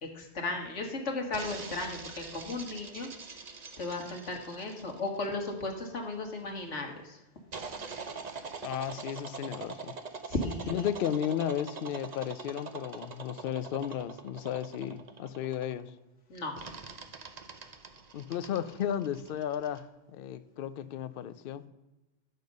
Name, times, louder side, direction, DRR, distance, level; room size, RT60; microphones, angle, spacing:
voice 1, 0.0-3.1 3.8-7.2 10.3-10.9 16.3-16.5, left 2 dB, 85° left, 2 dB, 1.8 m, -35 dB
sound 1, 1.3-6.2 7.5-15.9 16.6-19.8, right 4 dB, 40° right, 0.8 m, -44 dB
voice 2, 8.6-9.9 10.7-15.9 18.1-21.7, left 10 dB, 60° left, 13 dB, 0.7 m, -34 dB
10.0 x 6.7 x 5.3 m, 1.1 s
omnidirectional pair, 1.2 m